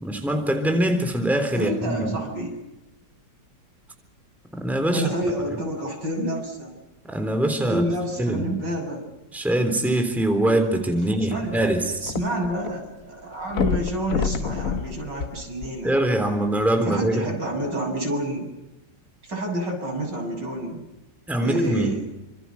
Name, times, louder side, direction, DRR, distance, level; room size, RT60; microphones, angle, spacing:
voice 1, 0.0-2.1 4.6-5.0 7.1-7.9 8.2-8.5 9.3-12.0 15.8-17.4 21.3-22.0, right 1 dB, ahead, 5 dB, 3.4 m, -23 dB
voice 2, 1.6-2.5 4.9-6.7 7.7-9.0 11.3-11.7 12.0-16.0 16.9-18.5 19.2-20.8 21.4-22.0, right 1 dB, 70° right, 2 dB, 8.0 m, -28 dB
sound 1, 11.2-12.7 13.0-13.1 13.5-16.1 16.8-16.9, left 6 dB, 50° left, 1.4 m, -28 dB
28.5 x 26.0 x 6.0 m, 0.98 s
omnidirectional pair, 2.0 m